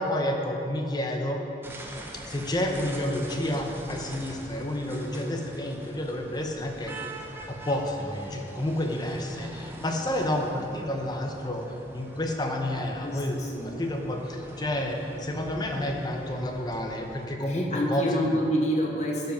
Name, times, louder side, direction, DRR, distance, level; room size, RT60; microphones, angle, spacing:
voice 1, 0.0-1.4 2.1-7.1 7.5-18.4, left 1 dB, 25° left, 2 dB, 0.8 m, -30 dB
sound 1, 1.6-17.3, right 1 dB, 15° right, 0.7 m, -44 dB
voice 2, 12.7-13.8 17.5-19.3, equal, 40° left, -1 dB, 1.3 m, -28 dB
12.0 x 5.2 x 5.3 m, 2.9 s
head